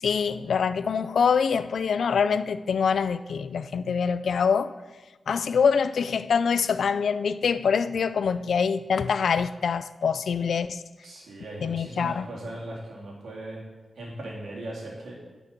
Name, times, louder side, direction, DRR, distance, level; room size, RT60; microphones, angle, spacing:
voice 1, 0.0-4.7 5.3-10.8 11.6-12.3, left 6 dB, 85° left, 0.4 m, -25 dB
voice 2, 11.0-13.6 14.0-15.2, right 1 dB, 85° right, 3.1 m, -38 dB
11.0 x 6.1 x 6.8 m
wide cardioid pair, 145°, 0 cm